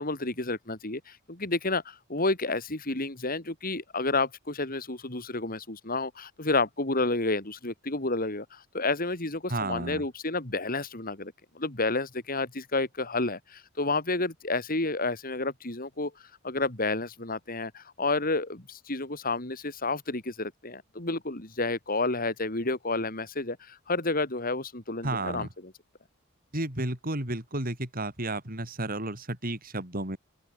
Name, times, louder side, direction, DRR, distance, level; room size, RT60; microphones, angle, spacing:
voice 1, 0.0-25.5, left 3 dB, 45° left, 4.1 m, -30 dB
voice 2, 9.5-10.0 25.0-25.5 26.5-30.2, right 2 dB, 45° right, 6.3 m, -32 dB
open air
head